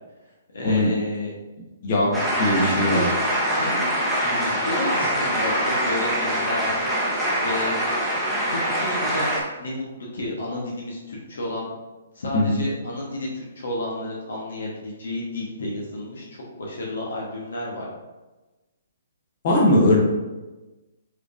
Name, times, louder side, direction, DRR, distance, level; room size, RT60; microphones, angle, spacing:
voice 1, 0.5-1.3 2.2-3.1 3.5-3.9 4.2-6.7 7.4-7.8 8.5-11.7 12.1-17.8, left 1 dB, 70° left, -3 dB, 1.2 m, -31 dB
sound 1, 2.1-9.4, equal, ahead, 1.0 m, -24 dB
voice 2, 2.4-3.1 12.3-12.6 19.4-20.0, left 1 dB, 45° left, -3 dB, 1.2 m, -19 dB
4.7 x 3.5 x 2.6 m, 1.1 s
hypercardioid pair, 130°, 0 cm